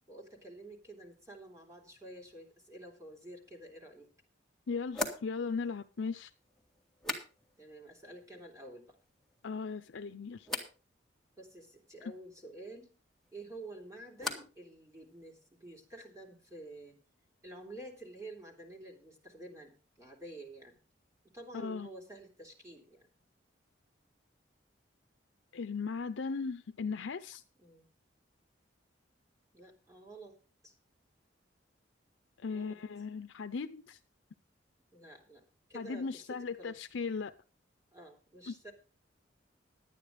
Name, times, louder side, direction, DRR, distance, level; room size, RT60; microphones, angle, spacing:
voice 1, 0.1-4.1 7.6-9.0 11.4-12.9 13.3-16.9 17.4-19.7 20.0-20.8 21.3-23.1 27.6-27.8 29.5-30.4 30.6-30.8 32.5-32.8 34.9-35.4 35.7-36.8 37.9-38.7, right 2 dB, 15° right, 1 dB, 3.0 m, -50 dB
sound 1, 3.7-3.8 4.9-7.8 8.0-8.6 9.0-9.6 10.4-10.8 13.2-14.7 14.9-15.5, left 2 dB, ahead, 1.8 m, -43 dB
voice 2, 4.7-6.3 9.4-10.5 21.5-21.9 25.5-27.4 32.4-34.0 35.7-37.3 38.5-38.6, left 5 dB, 90° left, 9 dB, 0.6 m, -37 dB
11.5 x 9.5 x 5.0 m, 0.34 s
head